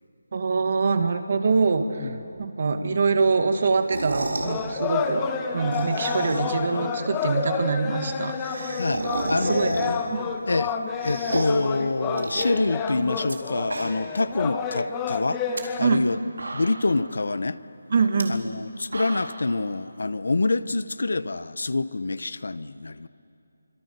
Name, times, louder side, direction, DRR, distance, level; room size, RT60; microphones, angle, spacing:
voice 1, 0.3-2.1 2.4-5.3 5.5-9.8 10.1-10.3 15.8-16.1 17.9-18.4, right 4 dB, 50° right, 7 dB, 2.0 m, -24 dB
sound 1, 3.8-4.6 5.5-6.7 7.0-7.1 7.3-7.4 7.6-7.7 8.0-10.2 10.6-11.7 12.1-13.4 13.6-14.2 14.6-14.7 15.3-15.6 16.1-16.2 16.4-17.0 18.1-18.2 18.7-19.5, right 2 dB, 85° right, 4.2 m, -33 dB
sound 2, 4.4-15.8, left 6 dB, 15° left, 1.3 m, -30 dB
voice 2, 8.8-10.0 10.5-10.8 11.0-15.4 15.8-16.2 16.5-17.6 18.3-23.1, left 3 dB, 75° left, 15 dB, 1.0 m, -26 dB
26.0 x 25.5 x 6.9 m, 2.6 s
figure-of-eight pair, 165°, 0 cm